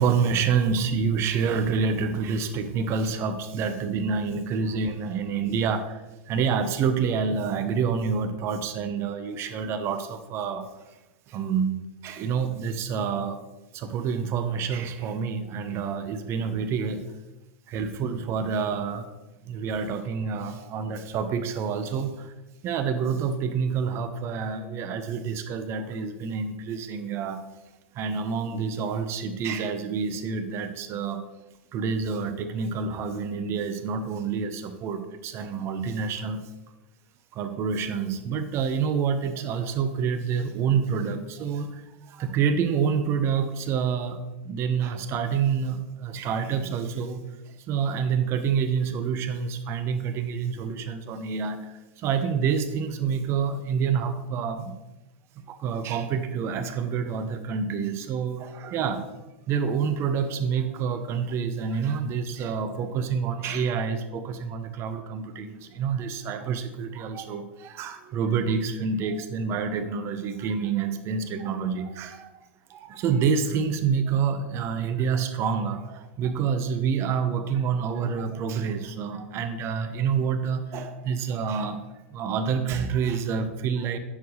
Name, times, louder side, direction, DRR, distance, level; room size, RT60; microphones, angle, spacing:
voice 1, 0.0-6.0 6.3-10.7 11.3-13.4 13.7-17.1 17.7-19.1 19.4-22.3 22.6-27.4 27.9-31.2 31.7-36.5 37.3-54.7 55.5-59.1 59.5-81.8 82.1-84.0, right 6 dB, 40° right, 9 dB, 0.9 m, -28 dB
10.0 x 7.0 x 3.3 m, 1.0 s
figure-of-eight pair, 95°, 7 cm